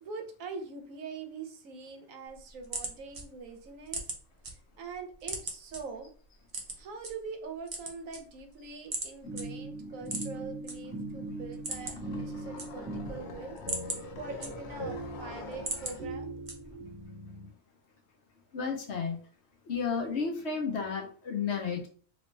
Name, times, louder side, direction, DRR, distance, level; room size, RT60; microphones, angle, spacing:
voice 1, 0.0-4.1 4.8-6.1 6.8-16.4, right 4 dB, 75° right, 4 dB, 1.1 m, -43 dB
sound 1, 2.3-4.5 4.9-5.8 6.5-7.1 7.6-8.5 8.9-9.1 9.4-9.5 10.0-10.7 11.1-11.2 11.5-12.1 12.4-13.1 13.5-14.9 15.3-16.0 16.5-16.9, right 2 dB, 40° right, 0.5 m, -37 dB
sound 2, 9.2-17.5, right 1 dB, 5° right, 1.0 m, -40 dB
sound 3, 11.4-16.1, left 5 dB, 75° left, 0.4 m, -46 dB
voice 2, 18.5-19.2 19.7-21.9, left 5 dB, 55° left, 1 dB, 1.0 m, -32 dB
3.0 x 2.8 x 3.2 m, 0.43 s
omnidirectional pair, 1.5 m